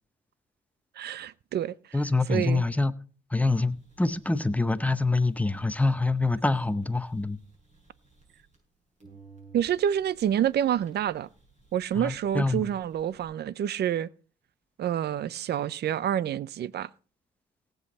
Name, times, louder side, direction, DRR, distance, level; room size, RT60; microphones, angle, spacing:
voice 1, 1.0-1.7 2.3-2.6 9.5-11.3 11.7-14.1 14.8-16.9, right 10 dB, 55° right, 0.6 m, -28 dB
voice 2, 1.9-3.0 3.3-7.4 11.9-12.7, left 3 dB, 5° left, 0.8 m, -26 dB
sound 1, 3.7-8.7 9.0-13.2, right 4 dB, 35° right, 7.0 m, -58 dB
18.0 x 8.0 x 4.2 m
cardioid pair, 90°, 20 cm